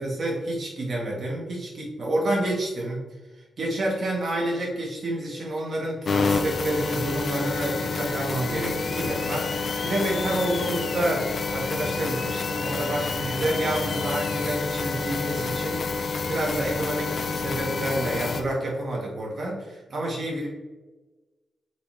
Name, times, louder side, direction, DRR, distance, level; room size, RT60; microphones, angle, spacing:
voice 1, 0.0-3.0 3.6-20.5, right 1 dB, 60° right, -3 dB, 2.0 m, -29 dB
sound 1, 6.0-18.4, left 4 dB, 60° left, 0.7 m, -28 dB
6.5 x 4.3 x 3.5 m, 1.2 s
cardioid pair, 75°, 0 cm